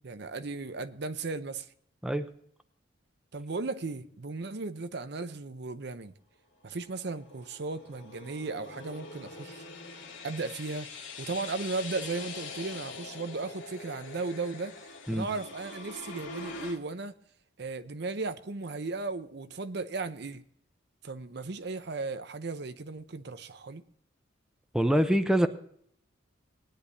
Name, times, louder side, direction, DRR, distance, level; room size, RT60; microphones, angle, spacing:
voice 1, 0.0-1.7 3.3-6.1 6.6-9.6 10.2-10.9 11.2-14.7 15.1-17.1 17.6-20.4 21.0-23.8, right 3 dB, 60° right, 0.7 m, -36 dB
sound 1, 6.7-16.8, left 4 dB, 80° left, 2.2 m, -44 dB
voice 2, 24.7-25.5, equal, 5° right, 0.7 m, -24 dB
20.0 x 10.5 x 2.7 m
head